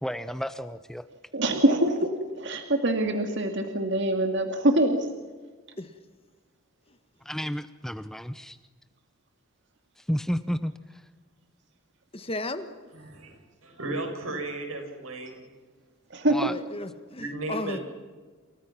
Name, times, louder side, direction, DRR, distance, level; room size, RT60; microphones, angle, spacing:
voice 1, 0.0-1.1 7.2-8.6 10.0-11.0 16.3-16.5, equal, ahead, 12 dB, 0.7 m, -32 dB
voice 2, 1.3-5.1 16.1-16.4, right 1 dB, 55° right, 4 dB, 2.4 m, -24 dB
voice 3, 12.1-12.7 16.4-17.8, left 2 dB, 25° left, 10 dB, 1.6 m, -35 dB
voice 4, 12.9-15.5 17.2-17.8, right 2 dB, 80° right, 4 dB, 7.5 m, -35 dB
29.0 x 28.0 x 6.0 m, 1.4 s
head